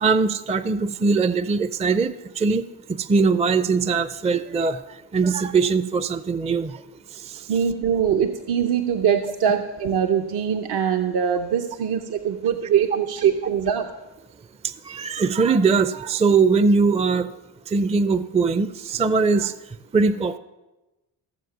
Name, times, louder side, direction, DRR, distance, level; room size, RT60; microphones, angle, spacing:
voice 1, 0.0-2.6 2.9-4.8 5.1-6.8 7.2-7.5 14.6-17.3 17.7-19.5 19.9-20.4, right 4 dB, 15° right, 13 dB, 0.4 m, -21 dB
voice 2, 7.5-14.0, right 8 dB, 60° right, 5 dB, 0.8 m, -22 dB
15.5 x 7.4 x 6.1 m, 1.1 s
supercardioid pair, 70°, 42 cm